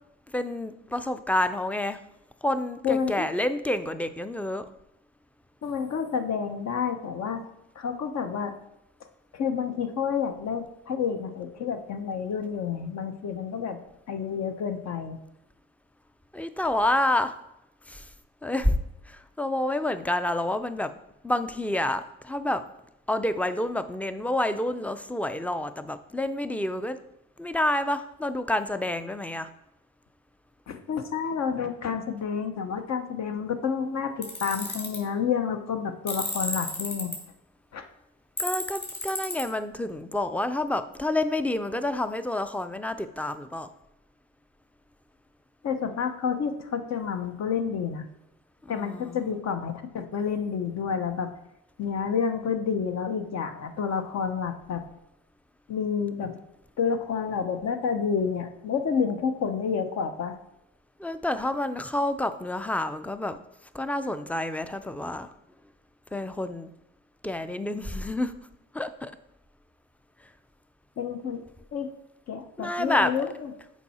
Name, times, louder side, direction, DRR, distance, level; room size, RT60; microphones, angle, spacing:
voice 1, 0.3-2.0 2.4-4.7 16.3-17.4 17.9-18.1 18.4-18.8 19.1-20.9 21.2-22.6 23.1-27.0 27.4-29.5 38.4-43.7 48.6-49.3 61.0-63.4 63.7-65.3 66.1-66.7 67.2-68.3 68.7-69.1 70.2-70.3 72.6-73.1, left 1 dB, 5° left, 11 dB, 0.4 m, -28 dB
voice 2, 2.8-3.3 5.6-7.4 7.8-8.5 9.3-13.8 14.1-15.2 30.7-37.1 37.7-37.8 45.6-48.1 48.7-51.3 51.8-54.8 55.7-56.4 56.8-60.4 71.0-71.4 71.7-71.9 72.3-73.5, left 6 dB, 60° left, 7 dB, 0.9 m, -29 dB
Tools, 34.2-35.0 36.1-37.2 38.4-39.4, left 2 dB, 35° left, 2.2 m, -32 dB
7.2 x 4.8 x 4.2 m, 0.82 s
cardioid pair, 90°, 30 cm